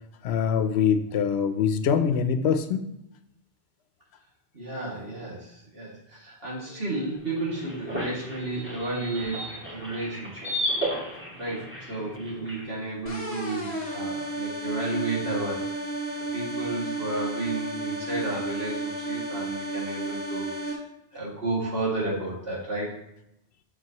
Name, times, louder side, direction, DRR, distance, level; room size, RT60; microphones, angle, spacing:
voice 1, 0.2-2.9, left 7 dB, 85° left, 10 dB, 0.9 m, -24 dB
voice 2, 4.5-10.5 11.3-15.8 16.3-20.8 21.1-22.9, right 2 dB, 65° right, -4 dB, 2.3 m, -32 dB
sound 1, 7.2-12.7, equal, 10° right, 2.2 m, -34 dB
sound 2, 13.1-20.7, right 2 dB, 15° left, 1.8 m, -32 dB
7.6 x 6.5 x 2.9 m, 0.81 s
omnidirectional pair, 1.1 m